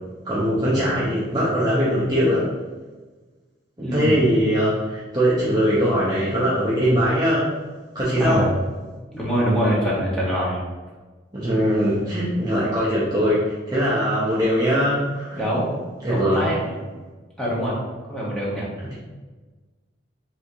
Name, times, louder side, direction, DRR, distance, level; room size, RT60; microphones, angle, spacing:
voice 1, 0.2-2.5 3.8-7.5 7.9-8.5 11.3-15.5 16.0-16.5, equal, 20° right, -8 dB, 0.6 m, -21 dB
voice 2, 3.8-4.1 8.2-8.5 9.1-10.6 15.4-16.7 17.4-17.7 18.1-18.7, equal, 5° left, -7 dB, 1.0 m, -24 dB
4.5 x 3.4 x 2.7 m, 1.3 s
head